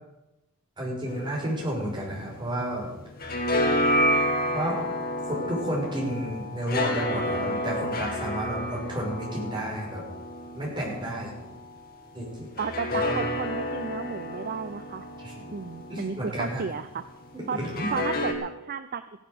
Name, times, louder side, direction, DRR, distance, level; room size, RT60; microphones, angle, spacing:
voice 1, 0.8-2.9 4.5-4.8 5.3-10.0 10.5-11.4 12.1-12.5 12.9-13.3 15.2-15.5 15.9-16.6 17.3-17.9, equal, 20° right, -3 dB, 5.7 m, -31 dB
sound 1, 1.1-2.7 3.0-11.7 12.6-16.6 17.6-18.3, left 1 dB, 40° left, 2.0 m, -30 dB
voice 2, 12.6-15.1 15.5-17.0 17.5-17.6 17.9-19.0, right 5 dB, 40° right, 11 dB, 0.5 m, -33 dB
16.0 x 10.5 x 6.7 m, 0.98 s
head